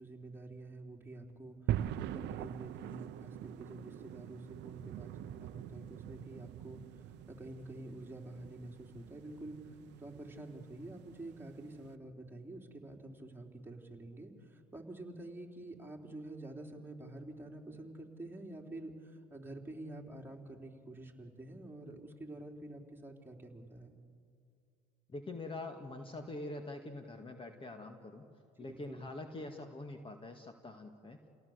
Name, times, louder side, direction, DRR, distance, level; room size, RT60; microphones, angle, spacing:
voice 1, 0.0-23.9 28.6-29.1, right 2 dB, 10° right, 1 dB, 3.7 m, -48 dB
sound 1, 1.7-12.0, right 12 dB, 60° right, 0.7 m, -43 dB
voice 2, 25.1-28.2 28.6-31.2, left 2 dB, 25° left, 5 dB, 2.0 m, -44 dB
29.5 x 17.5 x 8.1 m, 2.3 s
hypercardioid pair, 75°, 20 cm